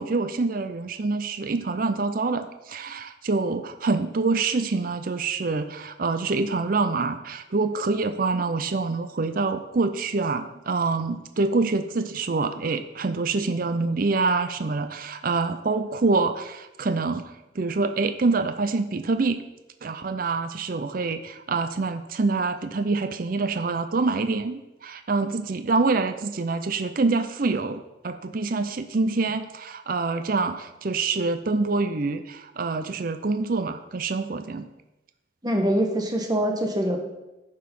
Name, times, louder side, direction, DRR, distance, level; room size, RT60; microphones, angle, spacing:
voice 1, 0.0-19.4 19.8-34.7, right 3 dB, 50° right, 9 dB, 0.5 m, -26 dB
voice 2, 35.4-37.0, equal, 20° right, 2 dB, 1.3 m, -24 dB
10.0 x 5.4 x 5.4 m, 0.97 s
head